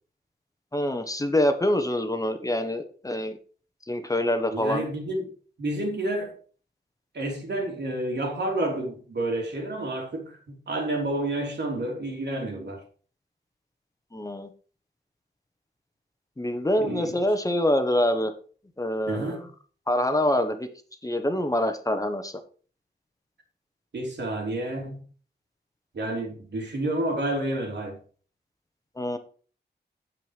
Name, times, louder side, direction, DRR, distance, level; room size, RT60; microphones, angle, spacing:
voice 1, 0.7-3.4 3.9-4.8 14.1-14.5 16.4-18.3 18.8-19.4 19.9-20.7 21.0-22.3 29.0-29.2, left 1 dB, 20° left, 1.2 m, -25 dB
voice 2, 4.5-5.3 5.6-6.3 7.1-10.4 10.7-12.8 16.8-17.1 19.1-19.5 23.9-25.1 25.9-28.0, right 1 dB, 75° right, 3.5 m, -29 dB
9.4 x 7.7 x 5.1 m
wide cardioid pair, 130°, 18 cm